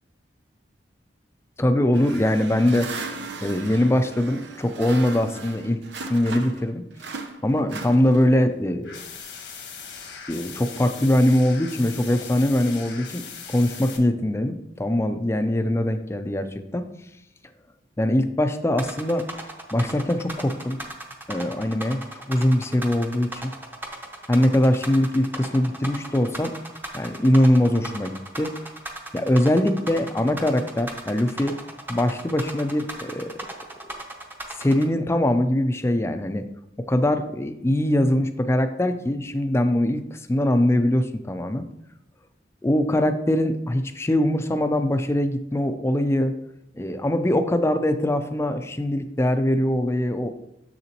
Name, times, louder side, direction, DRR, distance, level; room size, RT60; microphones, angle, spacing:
voice 1, 1.6-5.8 6.1-6.8 7.4-9.0 10.3-16.9 18.0-19.3 19.7-20.8 21.3-22.0 22.3-23.5 24.3-26.5 26.9-28.5 29.1-31.5 31.9-33.5 34.5-36.5 36.9-41.6 42.6-46.3 46.7-50.3, left 1 dB, 15° left, 9 dB, 0.4 m, -22 dB
sound 1, 1.9-6.7 7.0-8.5, right 4 dB, 75° right, 0.8 m, -37 dB
sound 2, 8.8-14.0, left 6 dB, 85° left, 1.3 m, -39 dB
sound 3, 18.8-34.8, right 1 dB, 10° right, 0.8 m, -36 dB
7.3 x 6.7 x 2.9 m, 0.82 s
head